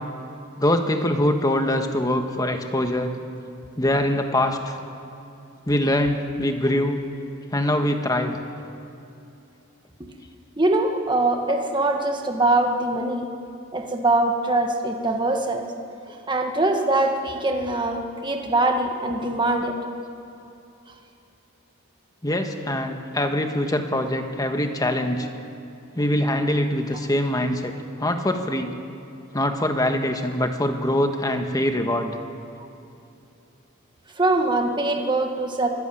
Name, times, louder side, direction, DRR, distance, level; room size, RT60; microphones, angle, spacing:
voice 1, 0.6-3.1 3.8-4.7 5.7-7.0 7.5-8.4 22.2-25.3 25.9-27.7 28.0-28.7 29.3-32.2, left 1 dB, 15° left, 5 dB, 1.5 m, -23 dB
voice 2, 10.6-13.2 13.7-15.6 16.1-19.7 34.2-35.7, right 2 dB, 20° right, 3 dB, 1.5 m, -23 dB
24.0 x 15.0 x 9.2 m, 2.8 s
head